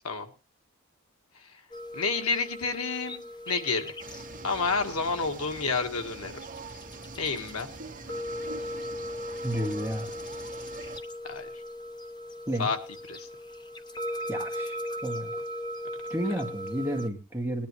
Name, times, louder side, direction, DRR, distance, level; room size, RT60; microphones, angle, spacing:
sound 1, 1.7-17.1, left 1 dB, 20° left, 1.0 m, -38 dB
voice 1, 1.9-4.0 4.4-6.3 7.2-7.7 11.2-11.5 12.6-12.8 13.1-13.3, left 4 dB, 80° left, 5 dB, 1.7 m, -29 dB
sound 2, 4.0-11.0, right 4 dB, 40° right, 1.9 m, -44 dB
voice 2, 9.4-10.1 12.5-12.7 14.3-15.4 16.1-17.7, equal, 10° right, 2 dB, 2.0 m, -31 dB
20.0 x 10.5 x 3.1 m, 0.31 s
head